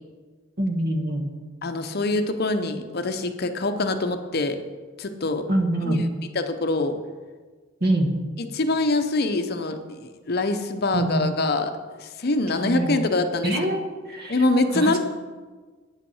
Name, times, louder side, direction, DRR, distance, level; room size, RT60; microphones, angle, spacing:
voice 1, 0.6-1.3 5.5-6.1 7.8-8.1 10.9-11.3 12.6-13.0 13.4-13.8 14.1-14.4 14.7-15.0, right 1 dB, 50° right, 4 dB, 1.2 m, -24 dB
voice 2, 1.6-4.6 5.0-5.5 5.8-6.0 6.3-7.0 8.4-13.5 14.3-15.0, left 2 dB, 50° left, 8 dB, 0.7 m, -24 dB
9.2 x 5.7 x 7.0 m, 1.4 s
head